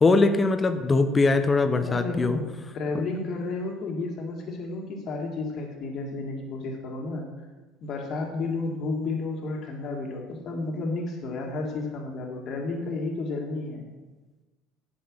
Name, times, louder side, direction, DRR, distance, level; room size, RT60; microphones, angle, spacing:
voice 1, 0.0-2.4, left 3 dB, 25° left, 8 dB, 0.9 m, -21 dB
voice 2, 1.8-7.3 7.8-13.9, left 3 dB, 50° left, 1 dB, 1.9 m, -32 dB
9.4 x 6.2 x 6.3 m, 1.2 s
hypercardioid pair, 70°, 0 cm